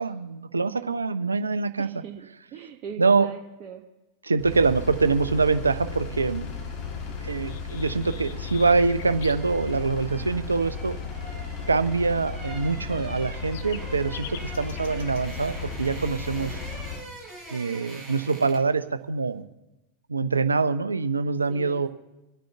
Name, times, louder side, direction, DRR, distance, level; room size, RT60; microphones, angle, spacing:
voice 1, 0.0-1.9 3.0-3.3 4.3-6.5 7.2-10.9 11.7-16.6 17.5-19.4 20.1-21.9, right 4 dB, 75° right, 12 dB, 0.7 m, -24 dB
voice 2, 1.8-2.2 2.5-3.8 10.1-10.4 16.4-16.6 21.5-21.9, right 8 dB, 40° right, 2 dB, 1.2 m, -41 dB
Engine, 4.4-17.0, left 6 dB, 40° left, 2.1 m, -35 dB
sound 1, 7.5-9.4 13.0-15.3, left 9 dB, 55° left, 0.8 m, -44 dB
sound 2, 8.8-18.8 19.1-19.3, right 3 dB, ahead, 5.1 m, -44 dB
26.0 x 9.1 x 3.4 m, 1.0 s
figure-of-eight pair, 90°, 0 cm